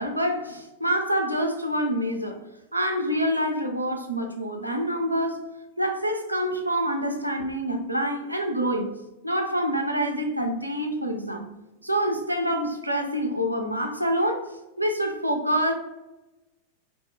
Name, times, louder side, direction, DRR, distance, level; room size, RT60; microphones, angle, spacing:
voice 1, 0.0-2.4 2.7-5.5 5.8-9.0 9.2-11.5 11.8-15.7, equal, 85° right, 0.4 m, -26 dB
2.6 x 2.1 x 3.3 m
figure-of-eight pair, 90°, 0 cm